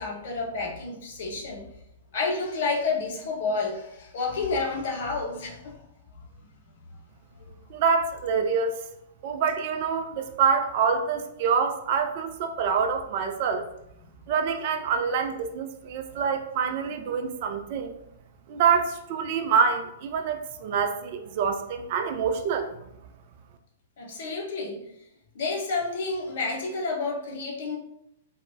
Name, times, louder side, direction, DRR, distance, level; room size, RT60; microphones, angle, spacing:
voice 1, 0.0-1.7 2.1-5.8 7.4-7.5 24.0-24.8 25.3-27.8, left 3 dB, 55° left, 0 dB, 0.5 m, -30 dB
voice 2, 7.7-8.7 9.2-13.6 14.3-17.9 18.5-22.7, right 6 dB, 45° right, 6 dB, 0.3 m, -26 dB
3.0 x 2.1 x 2.5 m, 0.78 s
figure-of-eight pair, 105°, 0 cm